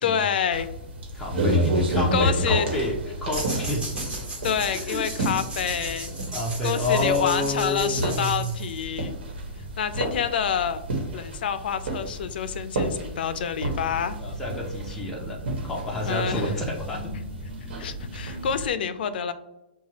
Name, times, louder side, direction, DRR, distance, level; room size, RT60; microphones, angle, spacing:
voice 1, 0.0-0.7 2.1-2.7 4.4-6.1 6.6-9.2 9.8-10.8 11.1-14.2 16.1-16.5 17.8-19.3, left 7 dB, 65° left, 12 dB, 0.4 m, -27 dB
sound 1, 0.5-18.7, right 1 dB, 85° right, 1.2 m, -31 dB
voice 2, 1.1-3.0 3.2-3.8 4.7-5.1 6.3-8.6 14.2-17.2, left 1 dB, 5° left, -4 dB, 0.5 m, -29 dB
sound 2, 3.3-9.0, right 2 dB, 15° right, 1.2 m, -36 dB
5.6 x 2.3 x 2.9 m, 0.94 s
hypercardioid pair, 155°, 6 cm